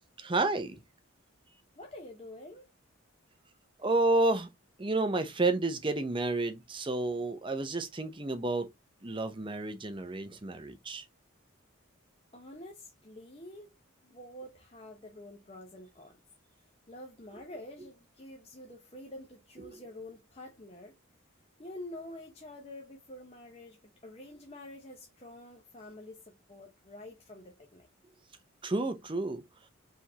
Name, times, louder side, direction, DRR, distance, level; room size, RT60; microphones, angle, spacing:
voice 1, 0.2-0.8 3.8-4.5 4.8-8.7 9.0-11.0 19.6-19.8 28.6-29.4, right 2 dB, 25° right, 0.6 m, -30 dB
voice 2, 1.8-2.7 12.3-13.7 14.0-16.2 16.9-20.9 21.6-27.9, left 1 dB, 30° left, 0.8 m, -47 dB
4.5 x 3.5 x 2.8 m
head